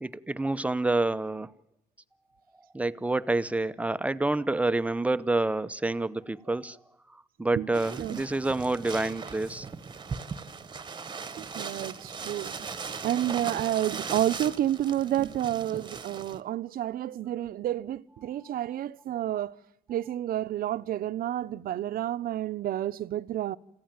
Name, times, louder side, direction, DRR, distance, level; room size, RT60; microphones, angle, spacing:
voice 1, 0.0-1.5 2.7-6.8 7.4-9.7, right 2 dB, 10° right, 0.8 m, -28 dB
voice 2, 7.6-8.2 11.4-12.7 13.0-19.6 19.9-23.6, right 12 dB, 60° right, 0.9 m, -30 dB
sound 1, 7.7-16.4, right 5 dB, 25° right, 1.3 m, -39 dB
28.0 x 15.5 x 9.0 m
cardioid pair, 110°, 17 cm